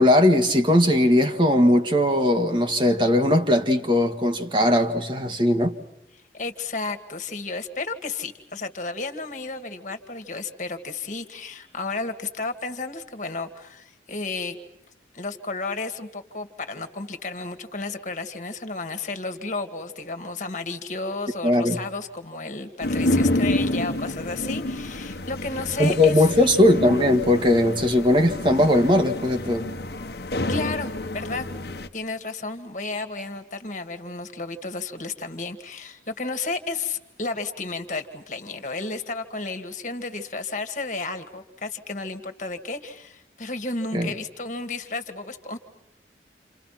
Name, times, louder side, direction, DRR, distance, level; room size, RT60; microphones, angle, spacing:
voice 1, 0.0-5.7 21.4-21.8 25.8-29.7 43.9-44.1, left 1 dB, 25° right, 1.6 m, -19 dB
voice 2, 6.3-14.6 15.1-26.6 30.5-31.5 31.9-45.6, left 3 dB, 40° left, 2.1 m, -32 dB
sound 1, 22.8-31.9, left 1 dB, 60° left, 1.3 m, -28 dB
29.0 x 28.5 x 5.9 m
head